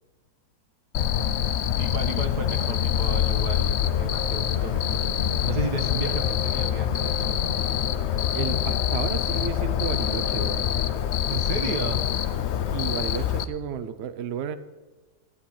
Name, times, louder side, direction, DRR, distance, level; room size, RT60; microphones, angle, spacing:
Cricket, 0.9-13.4, left 10 dB, 65° left, 0.7 m, -25 dB
voice 1, 1.8-7.4 7.6-7.7 11.3-12.2, right 4 dB, 75° right, 4 dB, 1.8 m, -34 dB
voice 2, 8.3-10.7 12.7-14.6, right 8 dB, 60° right, 11 dB, 0.7 m, -32 dB
14.0 x 9.9 x 4.3 m, 1.2 s
omnidirectional pair, 1.7 m